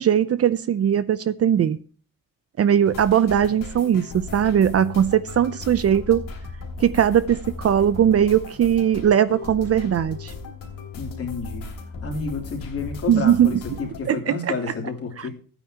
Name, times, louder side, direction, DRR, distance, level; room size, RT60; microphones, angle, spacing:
voice 1, 0.0-1.8 2.6-6.2 6.8-10.3 13.1-13.6 14.1-14.4, right 9 dB, 45° right, 0.6 m, -19 dB
sound 1, 2.8-14.0, left 4 dB, 75° left, 3.1 m, -37 dB
voice 2, 10.9-15.3, left 4 dB, 45° left, 3.4 m, -30 dB
15.0 x 9.2 x 2.9 m
wide cardioid pair, 175°, 33 cm